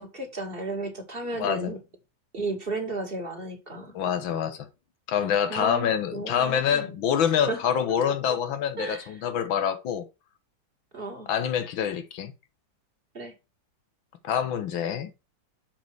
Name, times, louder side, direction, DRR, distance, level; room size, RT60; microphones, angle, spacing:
voice 1, 0.0-1.8 2.3-4.0 5.5-7.0 7.4-7.6 8.8-9.1 10.9-11.3 13.1-13.3, right 2 dB, 30° right, 2.1 m, -34 dB
voice 2, 1.4-1.7 3.9-4.7 5.1-10.1 11.3-12.3 14.2-15.1, left 8 dB, 85° left, 1.9 m, -26 dB
7.0 x 5.2 x 4.6 m
omnidirectional pair, 2.1 m